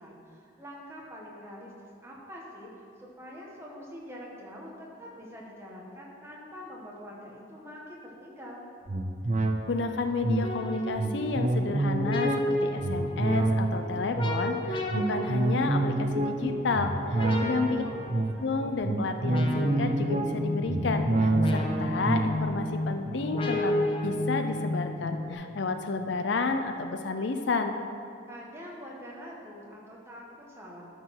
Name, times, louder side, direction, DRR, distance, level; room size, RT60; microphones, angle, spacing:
voice 1, 0.0-1.7 2.0-8.6 17.2-18.1 28.3-30.9, equal, 15° right, -3 dB, 1.4 m, -45 dB
sound 1, 8.9-24.6 25.0-25.1, right 2 dB, 40° right, 0.6 m, -29 dB
voice 2, 9.4-17.8 18.4-23.8 24.0-27.8, left 4 dB, 65° left, 7 dB, 0.5 m, -31 dB
sound 2, 10.4-25.3, left 1 dB, 25° left, 0.8 m, -33 dB
12.0 x 4.7 x 5.9 m, 2.5 s
head